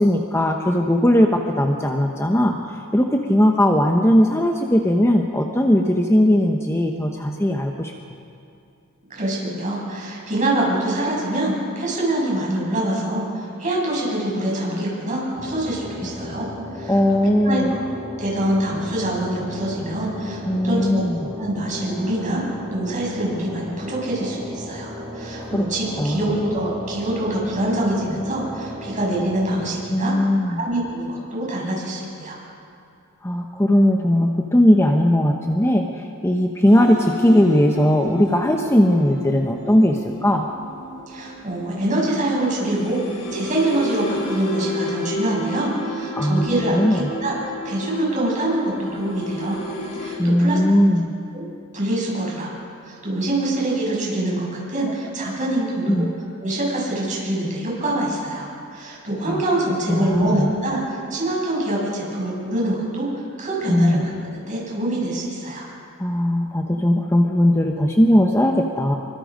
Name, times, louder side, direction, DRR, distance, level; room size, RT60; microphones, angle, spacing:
voice 1, 0.0-7.9 16.9-17.8 20.5-21.3 25.4-25.7 26.0-26.4 29.9-30.6 33.2-40.5 46.2-47.1 50.2-51.1 55.9-56.1 59.3-59.4 59.9-60.5 63.7-64.0 66.0-69.0, left 1 dB, 10° left, 2 dB, 1.0 m, -18 dB
voice 2, 9.1-16.5 16.7-17.0 17.4-17.6 18.2-21.0 21.4-22.4 22.7-30.1 30.4-32.4 41.1-47.4 47.6-49.6 49.9-50.6 51.3-51.5 51.7-52.5 52.8-56.1 56.4-58.5 58.7-63.1 63.4-65.6, right 1 dB, 35° right, -4 dB, 7.5 m, -25 dB
sound 1, 15.4-29.7, left 1 dB, 10° right, 5.9 m, -35 dB
sound 2, 36.7-50.2, left 1 dB, 80° left, 5.7 m, -32 dB
26.0 x 24.0 x 5.2 m, 2.5 s
head